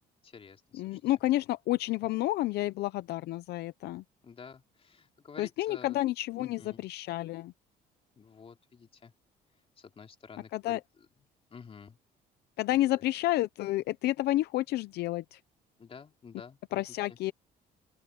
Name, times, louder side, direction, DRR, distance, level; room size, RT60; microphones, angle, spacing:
voice 1, 0.2-1.0 4.2-6.0 6.4-6.8 8.2-9.1 9.8-10.8 11.5-12.0 12.9-13.0 15.8-16.8 17.1-17.2, left 6 dB, 35° left, 3.2 m, -50 dB
voice 2, 0.8-4.0 5.4-7.5 10.5-10.8 12.6-15.4 16.7-17.3, left 16 dB, 75° left, 0.7 m, -30 dB
open air
cardioid pair, 110°, 17 cm